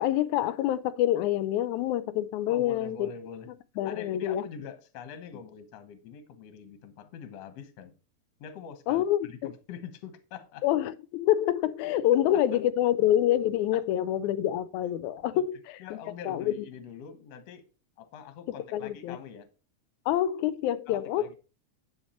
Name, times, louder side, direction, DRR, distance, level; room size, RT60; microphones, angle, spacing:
voice 1, 0.0-3.1 3.8-4.5 8.9-9.5 10.6-15.5 16.3-16.7 18.7-19.2 20.1-21.2, left 12 dB, 85° left, 2.0 m, -26 dB
voice 2, 2.5-3.5 3.8-7.9 8.4-10.6 12.1-12.6 13.7-13.8 15.3-15.4 15.8-17.7 18.0-19.5 20.9-21.4, left 7 dB, 65° left, 2.2 m, -44 dB
9.6 x 5.5 x 4.3 m
omnidirectional pair, 3.3 m